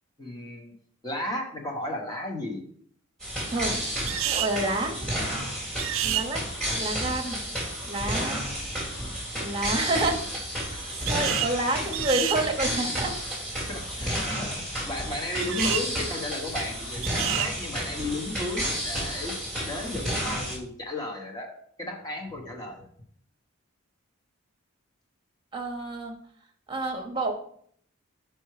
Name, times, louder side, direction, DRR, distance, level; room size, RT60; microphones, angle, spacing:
voice 1, 0.2-0.7 1.0-2.6 10.7-11.6 13.7-19.4 19.6-21.5 21.8-22.9, left 1 dB, 20° left, 0 dB, 1.1 m, -34 dB
sound 1, 3.2-20.6, equal, 5° left, 2.0 m, -31 dB
sound 2, 4.1-4.6 5.8-6.3 11.1-11.5 11.9-12.4 15.4-15.9 17.0-17.5, right 13 dB, 65° right, 0.4 m, -29 dB
voice 2, 4.2-5.0 6.0-6.4 6.8-7.4 7.8-8.5 9.3-10.2 11.0-13.1 14.2-14.4 25.5-26.1 26.7-27.3, right 2 dB, 25° right, 3 dB, 0.9 m, -28 dB
5.3 x 4.6 x 4.8 m, 0.63 s
head